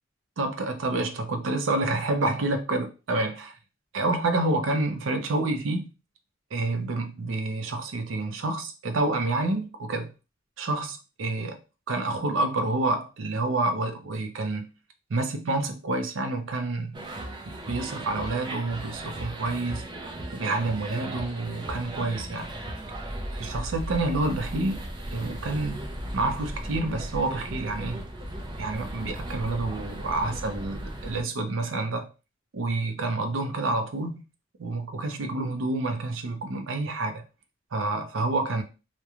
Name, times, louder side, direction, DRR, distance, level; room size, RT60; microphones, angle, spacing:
voice 1, 0.4-3.5 3.9-5.9 6.5-10.1 10.6-11.6 11.9-14.7 15.1-17.0 17.7-19.8 20.3-22.5 23.3-24.8 25.1-28.1 28.6-32.1 32.5-34.2 34.6-37.2 37.7-38.6, right 2 dB, 85° right, 0.5 m, -28 dB
sound 1, 16.9-31.2, right 1 dB, 25° right, 0.4 m, -36 dB
2.9 x 2.1 x 2.4 m
head